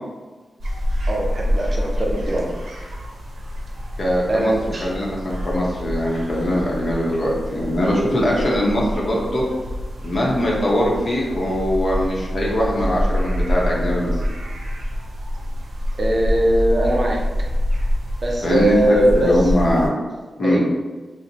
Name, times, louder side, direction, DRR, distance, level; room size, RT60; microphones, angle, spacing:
sound 1, 0.6-19.9, equal, 85° right, 0.5 m, -26 dB
voice 1, 1.1-2.5 4.3-4.9 16.0-17.2 18.2-19.3 20.4-20.6, right 1 dB, 35° right, -1 dB, 0.4 m, -20 dB
voice 2, 4.0-4.5 4.8-9.4 10.0-14.2 18.4-19.9 20.4-20.6, left 1 dB, 50° left, -4 dB, 0.8 m, -21 dB
4.1 x 2.1 x 2.7 m, 1.3 s
wide cardioid pair, 155°, 0 cm